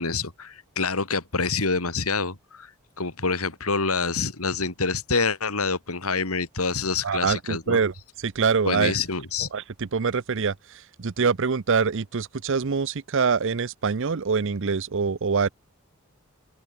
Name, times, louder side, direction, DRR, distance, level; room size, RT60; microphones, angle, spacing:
voice 1, 0.0-2.7 3.0-7.8 8.6-9.5, left 4 dB, 80° left, 3.1 m, -26 dB
voice 2, 7.0-9.0 9.4-10.5 11.0-15.5, right 5 dB, 60° right, 0.6 m, -24 dB
open air
head